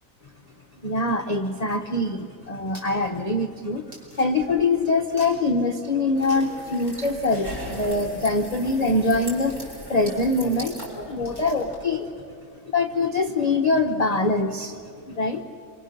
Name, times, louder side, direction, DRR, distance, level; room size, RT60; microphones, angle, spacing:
voice 1, 0.8-12.1 12.7-14.8 15.1-15.4, left 2 dB, 30° left, 5 dB, 0.8 m, -24 dB
sound 1, 1.7-4.7 5.0-5.6 6.1-6.7 6.9-7.0 7.3-11.8, right 1 dB, 80° right, 5.9 m, -51 dB
sound 2, 6.1-11.8, equal, 30° right, 6.0 m, -38 dB
27.0 x 25.5 x 6.6 m, 2.5 s
omnidirectional pair, 1.6 m